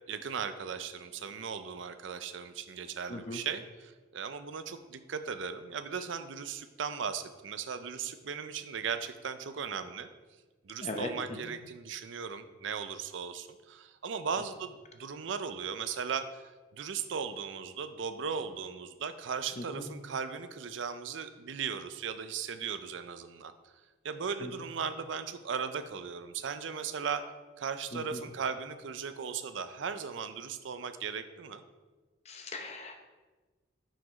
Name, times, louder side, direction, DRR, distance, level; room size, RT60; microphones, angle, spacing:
voice 1, 0.1-10.1 10.6-16.4 16.7-23.5 24.0-27.2 27.6-31.6, right 6 dB, 70° right, 10 dB, 0.5 m, -37 dB
voice 2, 32.3-33.0, left 2 dB, 35° left, 4 dB, 0.7 m, -39 dB
6.0 x 4.9 x 5.1 m, 1.3 s
head